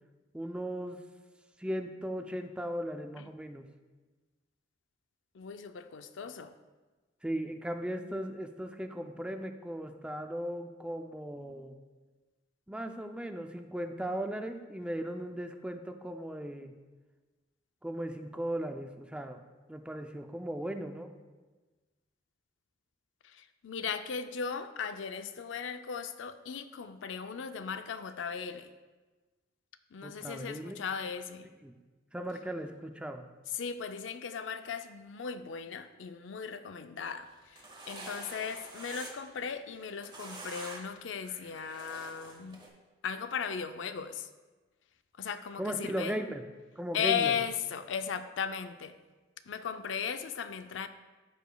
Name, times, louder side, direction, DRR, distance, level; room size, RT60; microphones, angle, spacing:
voice 1, 0.3-1.0 1.6-3.6 7.2-11.8 12.7-16.7 17.8-19.4 19.7-21.1 30.0-30.8 31.6-31.7 32.1-33.3 45.6-46.5 46.8-47.3, right 1 dB, 5° right, 6 dB, 0.4 m, -37 dB
voice 2, 5.3-6.5 23.2-28.7 29.9-31.5 33.5-42.6 43.0-44.3 45.2-46.2 46.9-49.0 49.5-50.9, left 7 dB, 85° left, 10 dB, 0.4 m, -37 dB
sound 1, 37.3-39.3 39.7-40.9 41.2-42.7, right 2 dB, 25° right, 1.3 m, -46 dB
14.0 x 5.0 x 2.3 m, 1.3 s
head